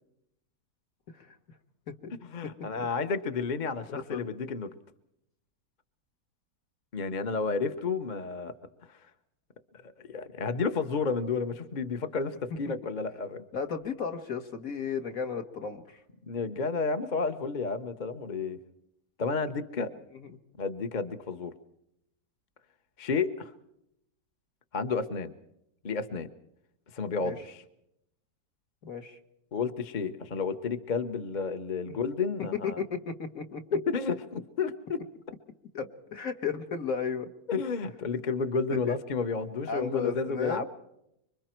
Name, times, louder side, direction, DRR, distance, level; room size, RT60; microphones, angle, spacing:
voice 1, 2.2-4.7 6.9-8.5 9.8-13.4 16.3-18.6 19.2-19.9 20.6-21.5 23.0-23.5 24.7-25.3 25.8-26.3 26.9-27.6 29.5-32.8 33.7-35.0 37.5-40.6, left 4 dB, 35° left, 9 dB, 0.9 m, -31 dB
voice 2, 3.9-4.2 13.5-16.0 20.3-20.4 27.2-27.4 28.8-29.2 32.6-33.6 35.7-37.3 38.7-39.0 39.6-40.7, left 6 dB, 55° left, 6 dB, 1.9 m, -34 dB
26.0 x 24.0 x 4.5 m, 0.80 s
omnidirectional pair, 1.9 m